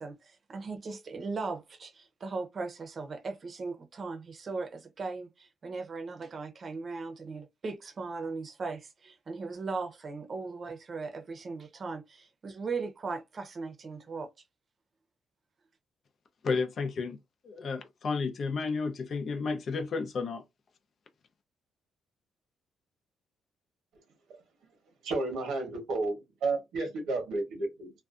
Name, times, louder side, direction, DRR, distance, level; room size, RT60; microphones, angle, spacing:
voice 1, 0.0-14.3, right 4 dB, 45° right, 0.7 m, -38 dB
voice 2, 16.4-17.2 17.4-20.4, left 4 dB, 50° left, 0.5 m, -32 dB
voice 3, 25.0-27.9, right 3 dB, 80° right, 1.0 m, -32 dB
2.6 x 2.3 x 2.4 m
cardioid pair, 90°, 0 cm